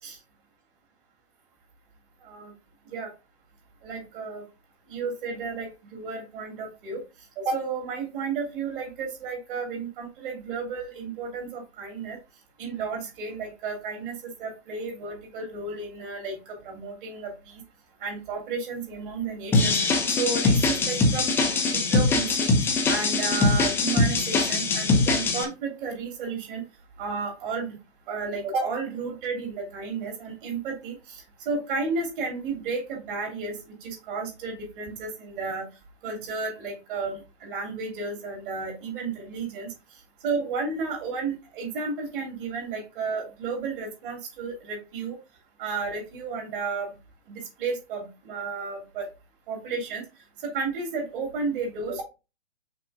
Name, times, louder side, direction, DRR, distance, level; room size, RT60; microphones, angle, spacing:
voice 1, 3.8-4.4 4.9-7.0 7.4-12.2 12.6-17.6 18.0-19.8 20.2-21.3 21.6-22.5 22.9-26.6 27.0-27.8 28.1-35.7 36.0-39.7 40.2-45.2 45.6-46.9 47.3-49.1 49.5-50.0 50.4-52.0, right 4 dB, 45° right, 0 dB, 2.8 m, -32 dB
sound 1, 19.5-25.4, left 3 dB, 5° left, 0.6 m, -22 dB
5.9 x 4.5 x 3.6 m, 0.29 s
hypercardioid pair, 135°, 35 cm